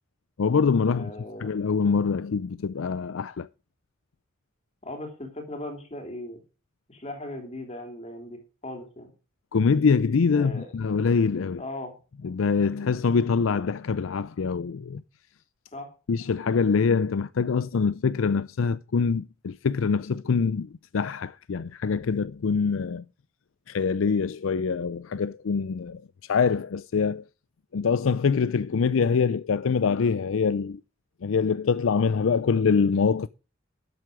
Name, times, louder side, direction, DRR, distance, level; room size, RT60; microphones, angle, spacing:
voice 1, 0.4-1.1 1.4-3.5 9.5-11.6 12.2-15.0 16.1-23.0 23.7-27.2 27.7-30.8 31.2-33.3, left 5 dB, 75° left, 0.5 m, -24 dB
voice 2, 0.9-1.5 4.8-6.4 6.9-9.1 10.3-10.7 11.6-11.9 15.7-15.9, left 1 dB, 35° left, 3.2 m, -38 dB
12.5 x 8.0 x 5.0 m
head